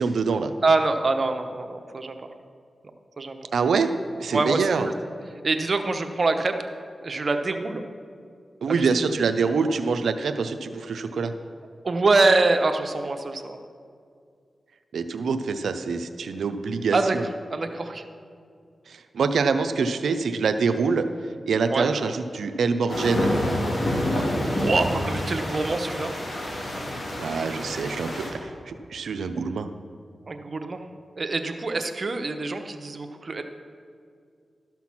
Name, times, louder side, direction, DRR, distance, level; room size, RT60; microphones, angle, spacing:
voice 1, 0.0-0.5 3.5-3.9 4.2-4.9 8.6-11.3 14.9-17.2 18.9-21.0 21.5-23.3 27.2-29.7, right 5 dB, 85° right, 8 dB, 0.4 m, -25 dB
voice 2, 0.6-2.2 3.2-3.4 4.3-4.9 5.4-6.5 7.0-7.8 11.8-13.6 16.9-17.2 17.5-18.0 21.7-21.9 24.1-26.1 30.3-30.8 31.2-33.4, right 3 dB, 55° right, 7 dB, 0.8 m, -25 dB
sound 1, 22.9-28.3, left 1 dB, 60° left, 2.4 m, -27 dB
12.5 x 5.9 x 5.9 m, 2.3 s
cardioid pair, 45°, 0 cm